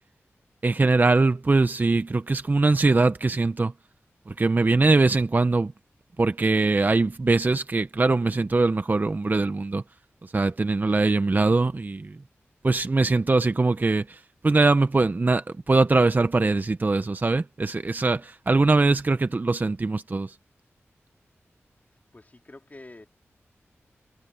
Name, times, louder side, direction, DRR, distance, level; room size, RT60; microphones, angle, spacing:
voice 1, 0.6-3.7 4.3-5.7 6.2-9.8 10.2-12.2 12.6-20.4, right 3 dB, 40° right, 0.7 m, -22 dB
voice 2, 22.1-23.1, left 2 dB, 35° left, 3.3 m, -47 dB
wide cardioid pair, 60°, 5 cm